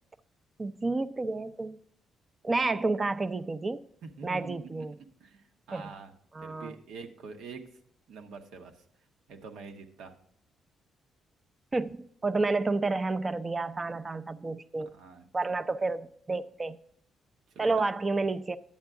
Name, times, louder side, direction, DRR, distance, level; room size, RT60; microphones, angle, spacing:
voice 1, 0.6-1.8 2.4-3.8 4.2-5.0 5.7-5.9 6.3-6.8 11.7-14.9 15.3-16.8 17.6-18.6, right 3 dB, 25° right, 0.5 m, -30 dB
voice 2, 4.0-4.9 5.2-6.1 6.4-7.6 8.1-8.7 9.3-10.1 14.9-15.3 17.5-17.8, right 4 dB, 80° right, 1.1 m, -45 dB
10.5 x 8.1 x 3.6 m
cardioid pair, 90°, 0 cm